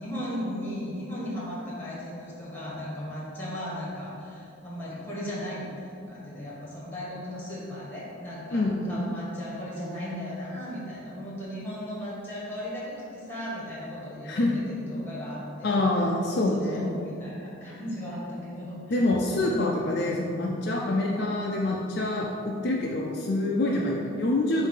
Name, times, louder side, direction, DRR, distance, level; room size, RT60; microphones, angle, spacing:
voice 1, 0.0-15.8 16.5-19.4 20.8-21.1 23.6-23.9, equal, 10° left, -6 dB, 1.5 m, -36 dB
voice 2, 8.5-9.0 14.2-14.6 15.6-16.9 18.9-24.7, left 2 dB, 50° left, -2 dB, 0.5 m, -26 dB
7.2 x 2.7 x 5.6 m, 2.5 s
head